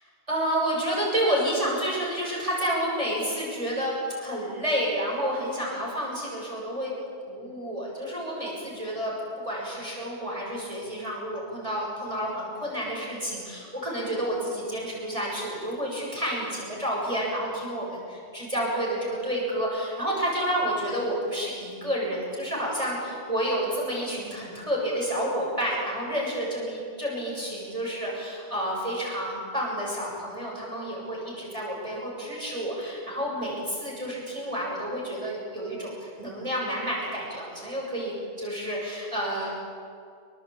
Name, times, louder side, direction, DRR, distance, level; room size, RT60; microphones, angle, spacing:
voice 1, 0.3-6.9 7.3-9.1 9.4-39.6, equal, 30° right, -4 dB, 7.1 m, -30 dB
27.0 x 24.5 x 8.7 m, 2.3 s
omnidirectional pair, 1.2 m